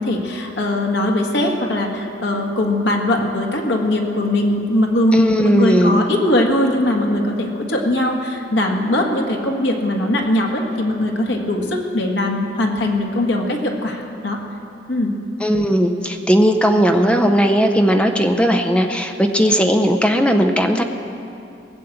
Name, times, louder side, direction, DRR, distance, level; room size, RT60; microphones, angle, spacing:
voice 1, 0.0-14.4 14.9-15.1, left 1 dB, 85° left, 2 dB, 1.7 m, -20 dB
voice 2, 5.1-6.0 15.4-20.8, equal, 5° left, 6 dB, 0.7 m, -17 dB
18.5 x 7.4 x 7.8 m, 2.7 s
head